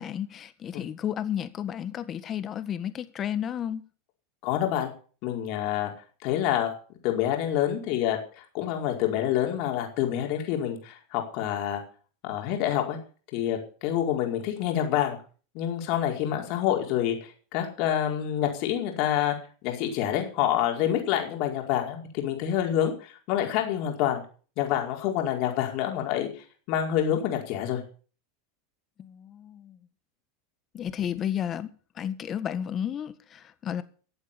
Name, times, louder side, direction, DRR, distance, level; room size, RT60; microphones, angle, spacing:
voice 1, 0.0-3.9 29.0-29.8 30.7-33.8, left 9 dB, 35° left, 1.6 m, -32 dB
voice 2, 4.4-4.9 5.2-5.9 6.2-6.7 7.0-11.8 12.2-13.0 13.3-15.2 15.5-19.3 19.6-24.2 24.6-26.3 26.7-27.8, left 11 dB, 55° left, 4.8 m, -27 dB
15.0 x 8.2 x 7.1 m
hypercardioid pair, 115°, 0 cm